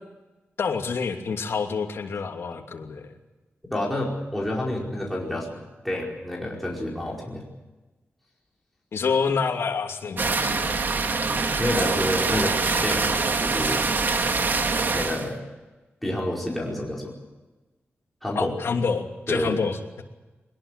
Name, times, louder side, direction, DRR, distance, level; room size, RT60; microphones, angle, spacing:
voice 1, 0.6-3.1 8.9-10.8 18.3-20.0, left 5 dB, 70° left, 3 dB, 2.9 m, -27 dB
voice 2, 3.7-7.4 11.6-13.8 14.9-15.4 16.0-17.1 18.2-18.5 19.3-19.6, left 1 dB, 5° left, -3 dB, 4.9 m, -29 dB
sound 1, 10.2-15.3, right 4 dB, 50° right, 2.0 m, -24 dB
22.0 x 21.0 x 8.4 m, 1.1 s
wide cardioid pair, 170°, 4 cm